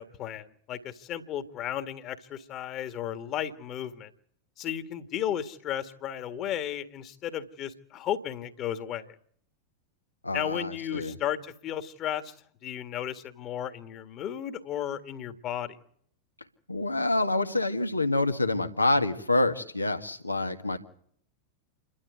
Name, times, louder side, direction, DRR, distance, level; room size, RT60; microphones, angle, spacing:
voice 1, 0.0-4.1 4.6-9.1 10.3-12.3 12.6-15.8, left 10 dB, 35° left, 9 dB, 1.8 m, -34 dB
voice 2, 10.2-11.2 16.7-20.8, left 2 dB, 85° left, 7 dB, 1.7 m, -27 dB
28.0 x 12.0 x 9.5 m, 0.64 s
figure-of-eight pair, 90°, 0 cm